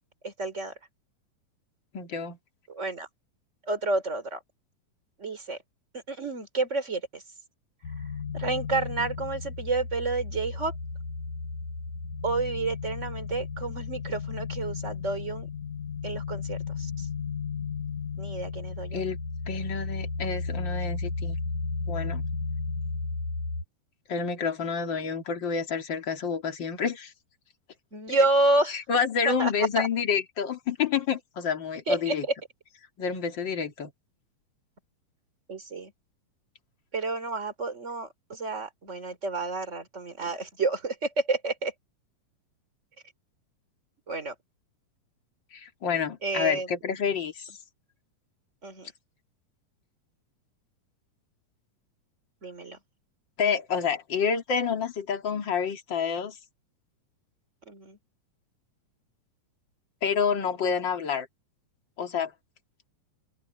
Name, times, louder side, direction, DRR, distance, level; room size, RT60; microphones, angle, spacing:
voice 1, 0.2-0.7 2.7-3.1 3.6-4.4 5.2-5.6 6.1-7.2 8.3-10.7 12.2-15.5 16.0-17.1 18.2-19.1 27.9-28.8 29.3-29.9 31.9-32.3 35.5-35.9 36.9-41.7 44.1-44.3 46.2-46.7 48.6-48.9 52.4-52.8 57.7-58.0, right 2 dB, 20° right, 3.7 m, -29 dB
voice 2, 1.9-2.4 18.9-19.2 19.5-21.4 21.9-22.2 24.1-27.1 28.1-28.2 28.7-32.2 33.0-33.9 45.5-47.5 53.4-56.4 60.0-61.3 62.0-62.3, left 6 dB, 35° left, 2.6 m, -28 dB
sound 1, 7.8-23.6, left 4 dB, 55° left, 3.4 m, -34 dB
open air
omnidirectional pair, 4.0 m